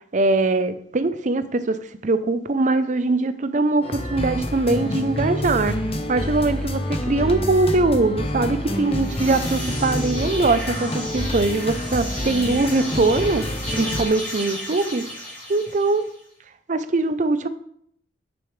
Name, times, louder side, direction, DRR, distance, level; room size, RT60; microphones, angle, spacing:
voice 1, 0.1-5.8 6.1-13.5 13.7-15.0 15.5-16.1 16.7-17.5, right 3 dB, 45° right, 12 dB, 0.6 m, -22 dB
sound 1, 3.8-14.1, left 1 dB, 35° left, 0.8 m, -27 dB
sound 2, 8.8-16.2, equal, 10° left, 2.9 m, -34 dB
9.2 x 7.0 x 3.2 m, 0.69 s
head